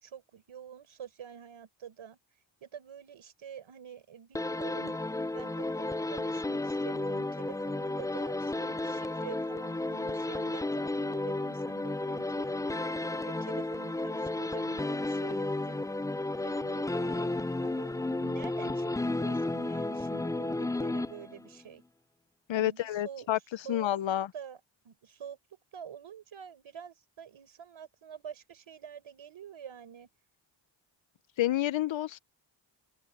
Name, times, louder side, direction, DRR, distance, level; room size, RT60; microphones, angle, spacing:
voice 1, 0.0-2.2 2.6-5.0 5.3-12.8 13.2-15.9 16.4-21.8 22.5-23.3 23.6-25.4 25.7-30.1, right 8 dB, 90° right, 4.8 m, -47 dB
sound 1, 4.3-21.6, left 2 dB, 10° left, 0.4 m, -33 dB
voice 2, 22.5-23.4 23.7-24.3 31.4-32.2, left 13 dB, 75° left, 0.7 m, -29 dB
cardioid pair, 75°, 46 cm